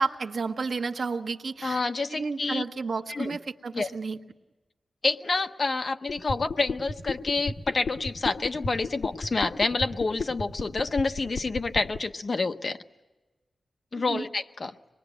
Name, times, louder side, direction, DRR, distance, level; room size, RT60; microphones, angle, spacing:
voice 1, 0.0-1.8 2.1-4.2 13.9-14.3, right 4 dB, 60° right, 5 dB, 1.1 m, -31 dB
voice 2, 1.6-2.6 3.1-3.4 3.7-3.9 5.0-12.8 13.9-14.7, left 3 dB, 40° left, 8 dB, 0.8 m, -28 dB
sound 1, 6.1-12.0, left 3 dB, 70° left, 1.5 m, -33 dB
25.0 x 21.5 x 9.1 m, 1.1 s
wide cardioid pair, 175°, 0 cm